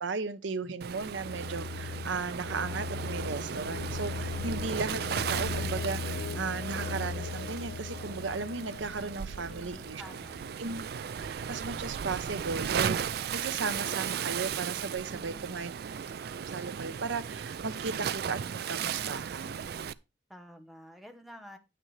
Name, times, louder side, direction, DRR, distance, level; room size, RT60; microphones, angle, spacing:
voice 1, 0.0-10.0 10.6-10.9 11.1-13.0 13.3-15.7 16.5-19.7, right 4 dB, 90° right, 0.8 m, -36 dB
Waves surf, 0.8-19.9, right 7 dB, 55° right, 0.4 m, -36 dB
sound 1, 1.1-11.0, left 5 dB, 55° left, 0.4 m, -39 dB
voice 2, 9.4-10.5 15.1-15.8 20.3-21.6, equal, ahead, 1.0 m, -50 dB
9.0 x 8.8 x 3.2 m
head